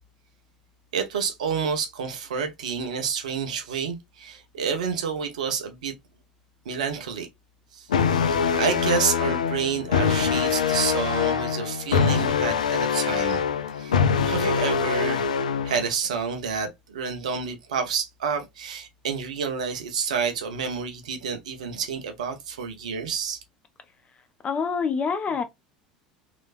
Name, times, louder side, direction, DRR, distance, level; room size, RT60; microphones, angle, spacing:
voice 1, 0.9-5.9 6.6-7.3 7.7-7.9 8.6-13.4 13.8-15.3 15.6-23.4, right 6 dB, 75° right, 1.0 m, -29 dB
sound 1, 7.9-15.9, left 6 dB, 80° left, 0.4 m, -24 dB
voice 2, 24.4-25.4, left 5 dB, 30° left, 0.9 m, -26 dB
3.3 x 3.0 x 2.5 m
hypercardioid pair, 75°, 4 cm